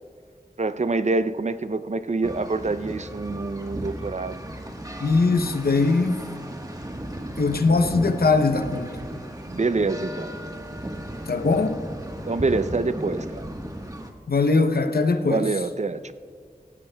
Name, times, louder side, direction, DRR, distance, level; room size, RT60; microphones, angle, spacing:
voice 1, 0.6-4.4 9.5-10.3 12.3-13.5 15.3-16.1, right 3 dB, 50° right, 0.5 m, -26 dB
sound 1, 2.2-14.1, right 1 dB, 25° right, 1.3 m, -35 dB
voice 2, 5.0-6.2 7.4-9.0 11.3-11.8 14.3-15.5, left 3 dB, 85° left, 0.7 m, -21 dB
18.0 x 15.5 x 2.2 m
wide cardioid pair, 40°, 16 cm